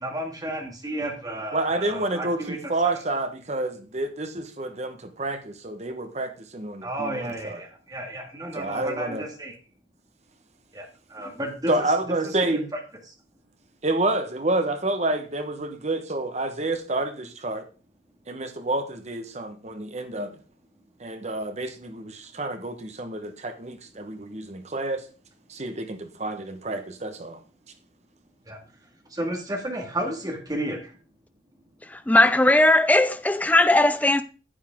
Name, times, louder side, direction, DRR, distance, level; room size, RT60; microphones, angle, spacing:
voice 1, 0.0-2.6 6.8-7.7 7.9-9.5 10.8-10.9 11.1-11.9 12.5-12.8 28.5-28.6 29.2-30.8, right 1 dB, 20° right, 2.0 m, -32 dB
voice 2, 1.5-7.6 8.5-9.2 11.7-12.7 13.8-17.6 18.3-20.4 21.0-25.0 25.5-27.4, right 2 dB, 35° right, 1.2 m, -29 dB
voice 3, 31.8-34.2, left 1 dB, 10° left, 0.4 m, -18 dB
9.9 x 8.3 x 3.7 m
head